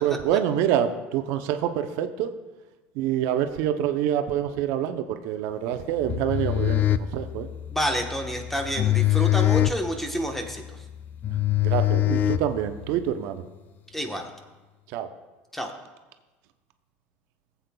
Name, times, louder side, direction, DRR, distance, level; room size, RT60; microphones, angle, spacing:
voice 1, 0.0-2.3 2.9-6.8 7.1-7.5 11.3-11.4 11.6-13.4 14.9-15.1, right 10 dB, 65° right, 8 dB, 0.6 m, -26 dB
sound 1, 6.0-13.0, left 13 dB, 35° left, 0.3 m, -24 dB
voice 2, 7.7-10.8 13.9-14.3 15.5-15.7, equal, 5° left, 3 dB, 1.1 m, -29 dB
17.5 x 8.1 x 2.3 m, 1.2 s
supercardioid pair, 130°, 5 cm